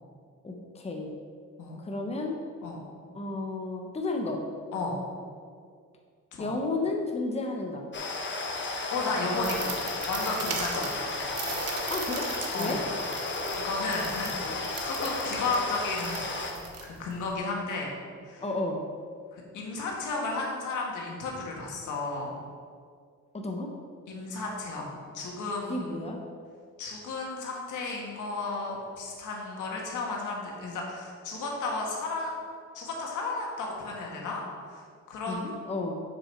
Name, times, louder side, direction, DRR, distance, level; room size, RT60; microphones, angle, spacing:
voice 1, 0.4-1.1 1.8-2.4 3.1-4.4 6.4-7.9 11.9-12.8 18.4-18.8 23.3-23.7 25.7-26.2 35.3-36.0, left 2 dB, 20° left, 1 dB, 1.0 m, -32 dB
sound 1, 7.9-16.5, left 3 dB, 35° left, 1.3 m, -33 dB
voice 2, 8.6-9.7 10.1-11.1 12.5-12.8 13.5-16.3 16.8-17.9 18.2-18.4 19.3-22.3 24.1-26.0 26.8-32.3 32.7-34.4 34.7-34.8 35.1-35.5, left 3 dB, 80° left, -1 dB, 1.8 m, -33 dB
sound 2, 9.3-17.3, right 5 dB, 55° right, 1.3 m, -39 dB
7.5 x 6.1 x 4.5 m, 2.1 s
cardioid pair, 90°, 30 cm